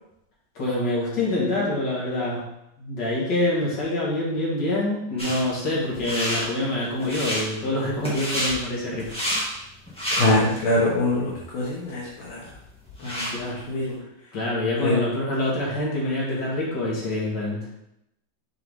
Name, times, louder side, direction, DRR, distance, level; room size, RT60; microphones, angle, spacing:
voice 1, 0.5-2.5 2.8-9.5 13.3-13.6 14.3-17.6, left 1 dB, 60° left, -6 dB, 2.6 m, -26 dB
sound 1, 5.2-5.4 5.9-6.4 7.0-7.4 8.0-8.5 9.0-9.5 9.9-10.6 11.1-11.2 11.9-12.0 12.2-13.4, equal, 5° left, 1.8 m, -28 dB
voice 2, 10.1-12.4 13.0-14.0 14.8-14.9, left 1 dB, 80° left, -6 dB, 2.2 m, -24 dB
6.9 x 4.8 x 3.7 m, 0.83 s
omnidirectional pair, 2.2 m